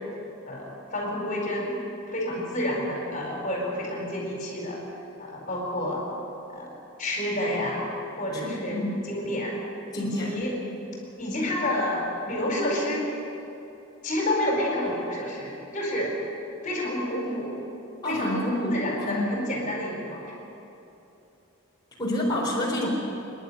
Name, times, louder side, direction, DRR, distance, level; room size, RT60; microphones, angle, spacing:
voice 1, 0.5-1.7 2.1-4.8 5.2-6.1 6.5-6.7 7.0-7.9 8.2-9.6 9.9-10.6 11.2-13.1 14.0-16.1 16.6-17.6 18.0-20.3, left 1 dB, 35° left, -1 dB, 4.6 m, -29 dB
voice 2, 8.3-9.0 9.9-10.4 18.0-19.3 22.0-22.9, left 1 dB, 20° left, -6 dB, 4.2 m, -28 dB
27.0 x 11.0 x 9.9 m, 2.9 s
head